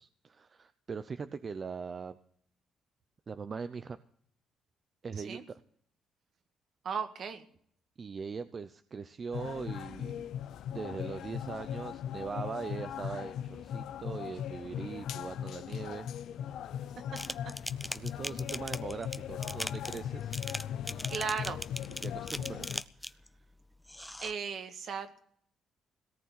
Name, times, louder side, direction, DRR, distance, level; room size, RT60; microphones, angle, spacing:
voice 1, 0.0-2.2 3.3-4.0 5.0-5.4 8.0-10.3 10.7-16.1 16.7-16.9 17.9-20.5 20.9-21.1 22.0-23.4, right 5 dB, 40° right, 11 dB, 0.6 m, -41 dB
voice 2, 6.8-7.4 17.1-17.5 21.1-21.7 24.2-25.2, right 6 dB, 60° right, 7 dB, 1.7 m, -37 dB
sound 1, 9.3-22.8, left 9 dB, 80° left, 0.6 m, -39 dB
sound 2, 17.2-23.3 23.8-24.3, left 1 dB, 5° left, 0.6 m, -40 dB
18.0 x 6.8 x 9.5 m, 0.63 s
cardioid pair, 90°, 0 cm